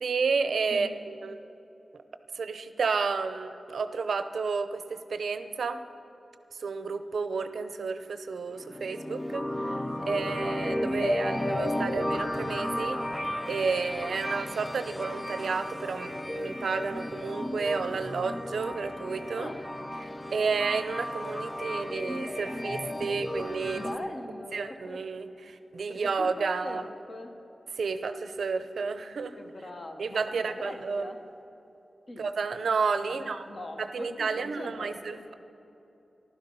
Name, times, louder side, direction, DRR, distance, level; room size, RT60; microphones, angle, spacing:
voice 1, 0.0-1.5 2.3-5.8 6.5-9.7 10.1-13.0 13.5-19.5 20.0-23.8 24.5-26.8 27.8-29.4 30.0-31.1 32.2-33.4 33.8-35.3, right 4 dB, 75° right, 10 dB, 0.7 m, -31 dB
sound 1, 8.6-24.0, left 1 dB, 15° left, 0.5 m, -33 dB
voice 2, 23.7-25.0 25.9-27.3 29.4-31.2 32.1-32.2 33.1-35.2, left 1 dB, 40° left, 4 dB, 1.3 m, -41 dB
15.0 x 12.0 x 5.5 m, 3.0 s
wide cardioid pair, 165°, 0 cm